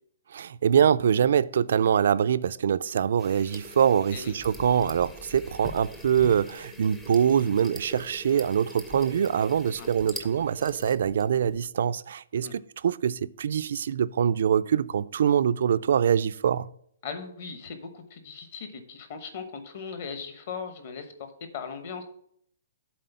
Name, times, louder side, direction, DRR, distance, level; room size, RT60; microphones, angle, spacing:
voice 1, 0.3-16.7, right 8 dB, 50° right, 0.3 m, -24 dB
sound 1, 3.2-11.7, left 1 dB, 5° left, 0.5 m, -43 dB
voice 2, 17.0-21.1 21.5-22.0, left 5 dB, 35° left, 1.0 m, -38 dB
7.5 x 4.2 x 6.9 m
hypercardioid pair, 180°, 0 cm